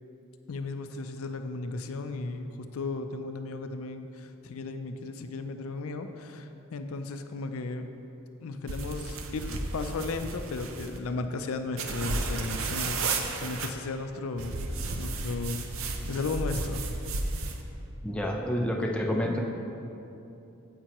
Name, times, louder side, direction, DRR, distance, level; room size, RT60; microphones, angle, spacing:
voice 1, 0.5-7.9 8.4-14.6 15.0-15.7 16.1-16.8 19.2-19.4, left 3 dB, 75° left, 8 dB, 0.4 m, -35 dB
sound 1, 8.7-11.0 11.8-13.7 14.4-17.6, right 3 dB, 65° right, 0.6 m, -33 dB
voice 2, 18.0-19.4, equal, 5° left, 0 dB, 0.5 m, -28 dB
9.1 x 7.4 x 3.0 m, 2.9 s
head